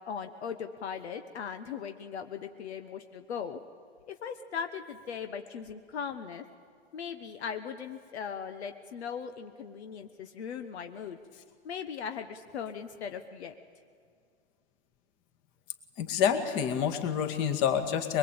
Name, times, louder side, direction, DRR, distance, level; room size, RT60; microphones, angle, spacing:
voice 1, 0.1-3.6 4.1-6.4 6.9-11.2 11.6-13.5, left 7 dB, 70° left, 8 dB, 1.3 m, -39 dB
voice 2, 16.0-18.2, left 8 dB, 35° left, 7 dB, 2.2 m, -27 dB
22.5 x 22.0 x 8.8 m, 2.2 s
hypercardioid pair, 140°, 33 cm